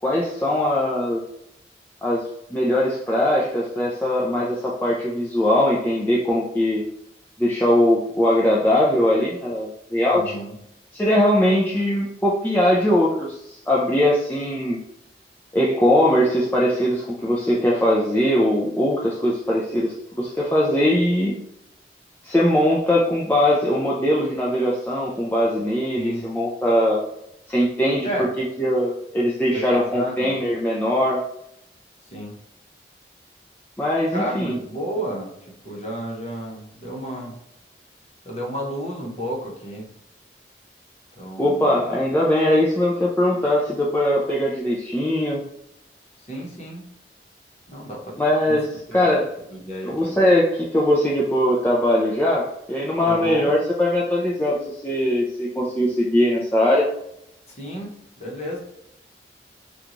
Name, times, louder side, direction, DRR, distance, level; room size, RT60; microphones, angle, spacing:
voice 1, 0.0-1.2 2.0-6.8 7.4-10.4 10.9-14.8 15.5-21.4 22.2-27.0 27.5-28.1 28.4-31.2 33.8-34.5 41.4-45.4 48.2-49.3 49.8-56.9, left 1 dB, 10° left, -5 dB, 0.4 m, -21 dB
voice 2, 10.1-10.5 26.0-26.3 28.0-28.3 29.5-30.4 32.1-32.4 34.1-35.3 35.6-37.4 38.2-39.9 41.2-41.8 46.3-46.9 47.7-48.1 48.5-48.6 48.9-49.2 49.5-50.2 53.1-53.5 57.6-58.6, equal, 35° left, -2 dB, 0.9 m, -31 dB
3.8 x 2.3 x 3.0 m, 0.78 s
head